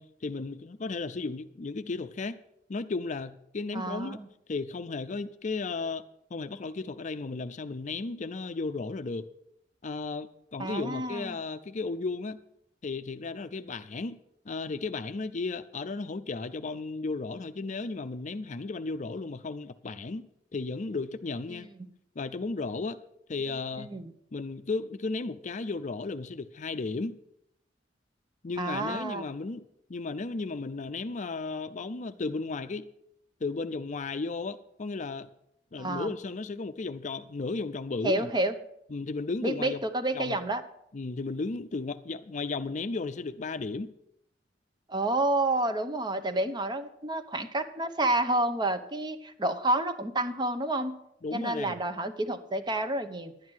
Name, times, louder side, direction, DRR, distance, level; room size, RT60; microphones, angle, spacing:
voice 1, 0.0-2.4 2.7-4.2 4.5-6.1 6.3-9.3 9.8-12.4 12.8-14.2 14.5-20.3 20.5-21.7 22.2-23.0 23.3-23.9 24.3-27.2 28.4-29.6 29.9-32.9 33.4-35.3 35.7-38.3 38.9-39.8 40.1-40.4 40.9-43.9 51.2-51.8, left 3 dB, 40° left, 11 dB, 0.5 m, -34 dB
voice 2, 3.7-4.3 10.6-11.4 21.5-21.7 23.8-24.1 28.6-29.3 35.8-36.1 38.0-38.5 39.4-40.6 44.9-50.9 51.3-53.3, right 1 dB, 25° right, 10 dB, 0.9 m, -29 dB
11.5 x 9.3 x 6.2 m, 0.75 s
head